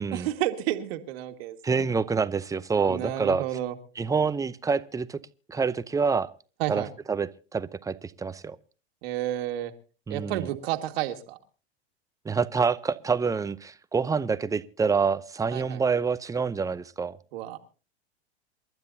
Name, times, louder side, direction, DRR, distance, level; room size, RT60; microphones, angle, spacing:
voice 1, 0.1-1.9 2.9-3.8 6.6-6.9 9.0-9.7 10.1-11.4 15.5-15.8 17.3-17.6, right 13 dB, 60° right, 2.0 m, -31 dB
voice 2, 1.6-3.5 4.0-5.2 5.5-6.3 6.7-8.6 10.1-10.5 12.2-17.2, right 5 dB, 10° right, 0.7 m, -27 dB
28.0 x 12.5 x 2.8 m
hypercardioid pair, 105°, 33 cm